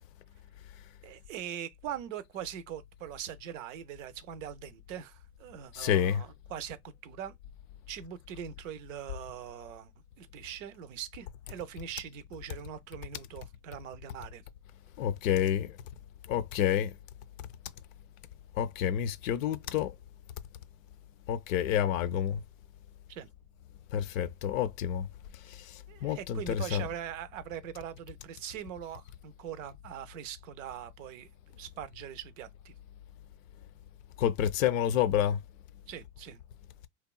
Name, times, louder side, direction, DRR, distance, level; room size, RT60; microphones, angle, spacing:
voice 1, 1.0-7.3 7.9-9.9 10.2-14.4 23.1-23.3 25.9-32.7 35.9-36.4, right 9 dB, 70° right, 0.6 m, -42 dB
voice 2, 5.7-6.2 15.0-15.8 16.3-16.9 18.6-19.9 21.3-22.4 23.9-25.1 25.4-26.8 34.2-35.4, left 10 dB, 75° left, 0.5 m, -29 dB
2.8 x 2.2 x 2.3 m
hypercardioid pair, 100°, 41 cm